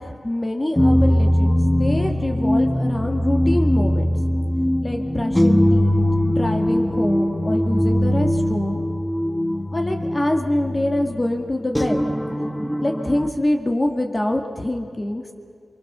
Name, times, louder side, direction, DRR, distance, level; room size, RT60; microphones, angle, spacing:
voice 1, 0.0-4.1 4.8-8.8 9.7-12.0 12.8-15.3, left 1 dB, 25° left, 2 dB, 1.9 m, -25 dB
sound 1, 0.8-13.3, equal, 10° left, 1.2 m, -21 dB
24.5 x 24.0 x 6.8 m, 2.2 s
wide cardioid pair, 75°, 0 cm